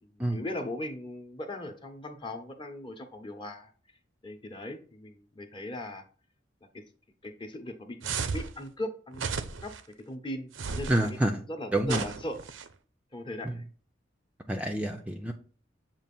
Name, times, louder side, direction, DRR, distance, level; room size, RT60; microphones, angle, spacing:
voice 1, 0.0-3.7 4.2-6.0 6.7-6.8 7.2-9.7 10.1-11.2 11.5-12.4 13.1-13.6, left 1 dB, 25° left, 5 dB, 0.9 m, -39 dB
sound 1, 8.0-8.5 9.1-9.8 10.5-11.1 11.8-12.7, right 5 dB, 85° right, 0.6 m, -34 dB
voice 2, 10.9-11.4 11.7-12.0 13.4-13.6 14.5-15.3, right 1 dB, 5° right, 3 dB, 0.4 m, -28 dB
7.3 x 2.5 x 5.3 m, 0.40 s
head